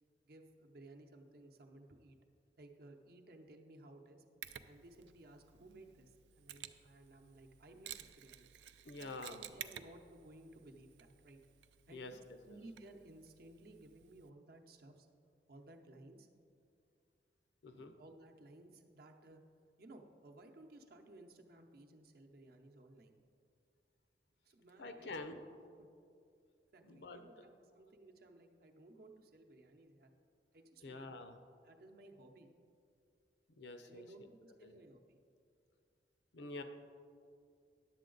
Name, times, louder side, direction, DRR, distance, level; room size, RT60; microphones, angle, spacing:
voice 1, 0.2-2.2 2.6-4.2 4.7-8.5 9.0-11.4 11.9-15.1 15.5-16.3 17.7-19.4 19.8-23.2 24.4-25.4 25.8-25.9 26.7-30.1 30.5-31.1 31.6-32.5 33.8-35.2, right 2 dB, 60° right, 4 dB, 0.7 m, -58 dB
Mechanisms, 4.4-14.3, right 10 dB, 80° right, 0.4 m, -54 dB
voice 2, 8.8-9.4 11.9-12.2 12.5-12.6 17.6-17.9 24.8-25.4 26.8-27.5 30.8-31.3 33.6-34.1 34.5-34.8 36.3-36.6, left 2 dB, 75° left, 8 dB, 0.6 m, -48 dB
10.5 x 7.5 x 3.9 m, 2.4 s
head